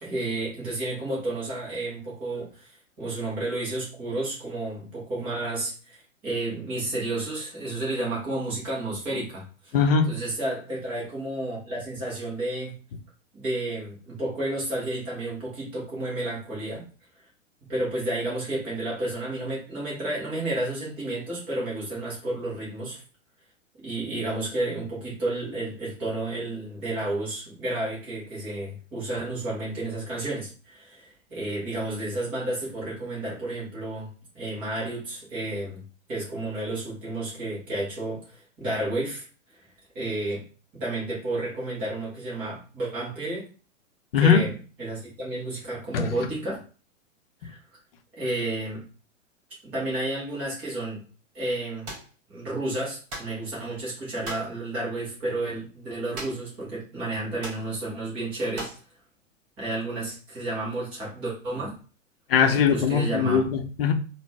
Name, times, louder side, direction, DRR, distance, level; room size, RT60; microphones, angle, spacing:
voice 1, 0.0-2.7 3.0-9.8 10.1-12.7 13.3-16.8 17.7-23.0 23.8-34.1 34.3-35.8 36.1-39.2 39.5-39.6 39.9-40.4 40.8-43.5 44.2-46.6 47.4-47.6 48.2-48.8 49.6-51.0 51.3-51.9 52.3-58.7 59.6-61.7 62.7-63.5, right 2 dB, 5° right, -6 dB, 0.3 m, -31 dB
voice 2, 9.7-10.1 44.1-44.4 45.9-46.1 62.3-63.9, left 6 dB, 50° left, 6 dB, 0.6 m, -20 dB
sound 1, 51.9-52.1 53.1-53.4 54.2-54.5 56.1-56.6 56.8-56.9 57.4-57.7 58.6-58.9, right 2 dB, 35° right, 1.3 m, -37 dB
3.8 x 2.0 x 3.2 m, 0.37 s
figure-of-eight pair, 105°, 39 cm